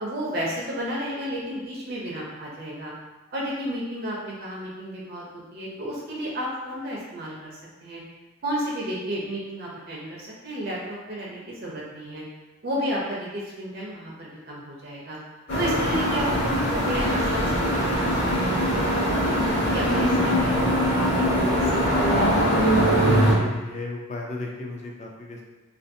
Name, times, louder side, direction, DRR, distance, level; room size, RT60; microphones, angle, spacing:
voice 1, 0.0-2.9 3.3-8.0 8.4-12.2 12.6-15.2 15.6-19.3 19.7-20.6 20.9-22.1, equal, 45° right, -4 dB, 0.5 m, -32 dB
sound 1, 15.5-23.3, equal, 50° left, 0.9 m, -22 dB
voice 2, 23.0-25.4, left 2 dB, 35° left, 0 dB, 0.3 m, -32 dB
2.5 x 2.4 x 2.6 m, 1.2 s
head